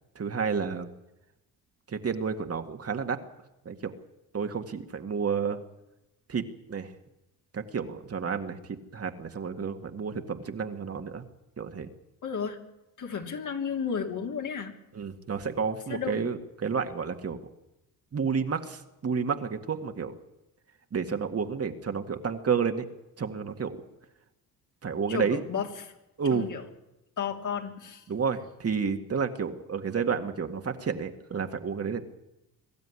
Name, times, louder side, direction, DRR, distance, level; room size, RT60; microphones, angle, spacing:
voice 1, 0.2-0.9 1.9-3.2 3.7-3.9 4.3-5.6 6.3-6.4 6.7-6.9 7.5-8.6 8.9-11.2 11.6-11.9 14.9-17.4 18.1-20.1 20.9-22.9 23.2-23.8 24.8-25.4 26.2-26.5 28.1-32.1, right 6 dB, 40° right, 6 dB, 2.0 m, -30 dB
voice 2, 12.2-12.6 13.0-14.7 15.9-16.3 25.1-25.9 26.3-26.7 27.2-28.0, left 6 dB, 55° left, 3 dB, 3.2 m, -33 dB
22.5 x 12.5 x 9.8 m, 0.92 s
supercardioid pair, 75°, 37 cm